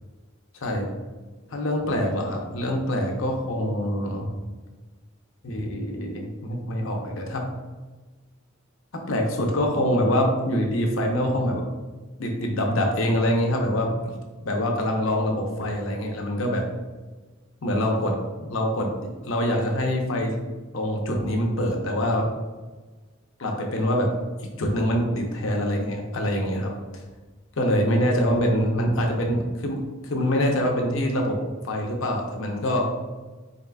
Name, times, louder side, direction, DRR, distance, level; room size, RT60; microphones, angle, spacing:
voice 1, 0.5-0.9 1.5-4.3 5.4-7.5 8.9-11.6 12.2-14.0 14.4-16.7 17.6-20.4 20.7-22.3 23.4-24.1 24.4-26.7 27.6-31.4 31.6-32.9, equal, 75° left, 2 dB, 0.7 m, -25 dB
4.2 x 3.7 x 2.3 m, 1.3 s
head